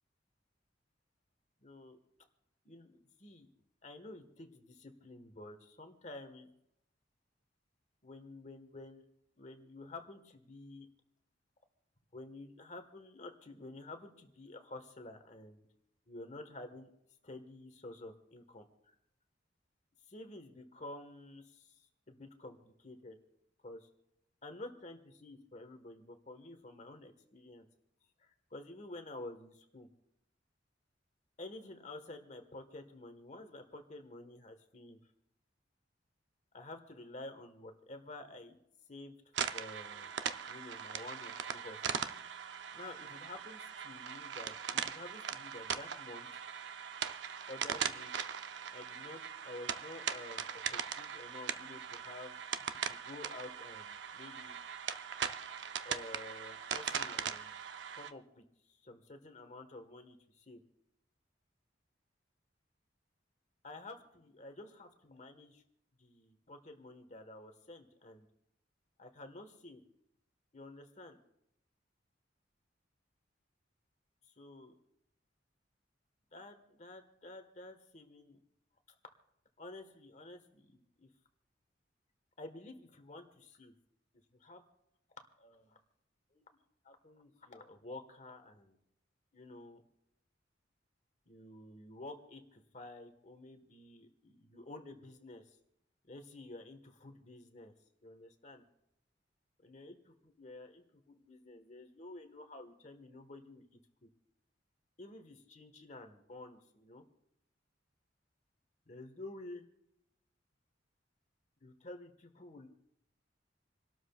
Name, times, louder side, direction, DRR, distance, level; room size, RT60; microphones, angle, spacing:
voice 1, 1.6-2.0 2.6-3.5 3.8-6.5 8.0-9.0 9.4-10.9 12.1-15.7 16.1-16.9 17.2-18.9 20.1-23.2 23.6-23.9 24.4-27.7 28.2-29.9 31.4-35.0 36.5-38.6 38.9-39.1 39.5-40.1 40.5-42.0 42.7-46.4 47.5-48.3 48.7-52.4 52.7-54.6 55.8-60.6 63.6-65.6 66.0-68.3 69.0-69.8 70.5-71.2 74.4-74.7 76.3-78.4 79.6-81.1 82.4-83.7 84.4-84.7 85.4-85.8 86.3-86.4 86.8-88.8 89.3-89.8 91.3-95.6 96.1-97.7 98.0-98.6 99.6-103.7 105.0-107.0 108.9-109.6 111.6-112.7, left 2 dB, 40° left, 7 dB, 1.4 m, -50 dB
sound 1, 39.3-58.1, right 7 dB, 65° right, 0.6 m, -40 dB
28.0 x 12.5 x 2.4 m, 0.79 s
head